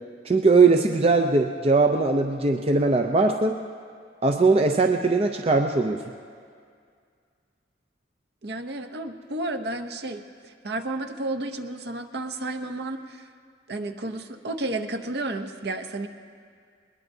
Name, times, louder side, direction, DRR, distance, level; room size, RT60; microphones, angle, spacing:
voice 1, 0.2-3.6 4.2-6.0, right 3 dB, 30° right, 4 dB, 0.5 m, -20 dB
voice 2, 8.4-13.3 13.7-16.1, right 2 dB, 55° right, 6 dB, 0.8 m, -32 dB
21.0 x 20.5 x 2.7 m, 2.2 s
head